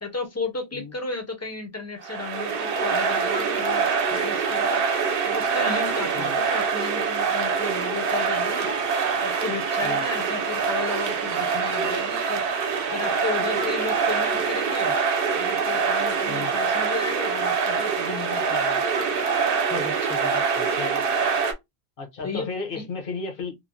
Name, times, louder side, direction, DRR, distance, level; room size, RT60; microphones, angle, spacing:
voice 1, 0.0-4.8 5.2-8.7 9.2-12.4 12.9-14.9 15.4-18.8 19.7-20.4 22.2-22.9, left 4 dB, 20° left, 0.5 m, -34 dB
sound 1, 2.0-21.5, right 5 dB, 65° right, 0.8 m, -24 dB
voice 2, 20.5-21.0 22.0-23.6, left 4 dB, 60° left, 0.9 m, -34 dB
3.1 x 2.1 x 2.5 m
omnidirectional pair, 1.1 m